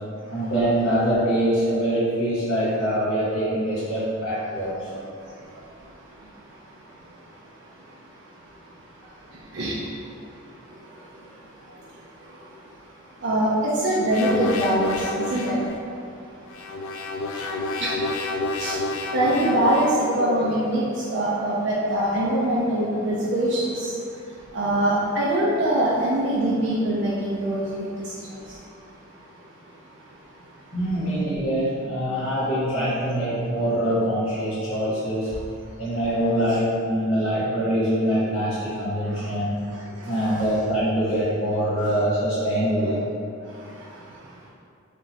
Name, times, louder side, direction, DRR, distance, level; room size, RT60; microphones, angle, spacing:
voice 1, 0.3-4.9 30.7-35.3 35.8-39.5 40.0-43.0, equal, 60° left, -11 dB, 1.4 m, -24 dB
voice 2, 4.9-30.7 39.0-39.3 39.6-40.5 42.9-43.0 43.4-44.5, right 1 dB, 55° right, -7 dB, 0.4 m, -27 dB
sound 1, 14.1-15.7 16.5-20.1, left 2 dB, 85° left, 0.3 m, -29 dB
3.4 x 2.9 x 2.7 m, 2.4 s
head